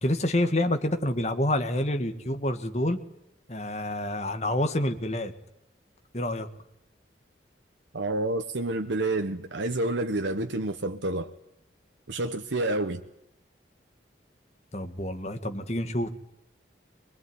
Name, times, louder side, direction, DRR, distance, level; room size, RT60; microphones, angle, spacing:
voice 1, 0.0-3.0 3.5-5.3 6.1-6.5 14.7-16.1, left 1 dB, 35° left, 1.9 m, -28 dB
voice 2, 7.9-11.3 12.1-13.0, right 2 dB, 90° right, 1.2 m, -29 dB
23.0 x 22.5 x 9.7 m
head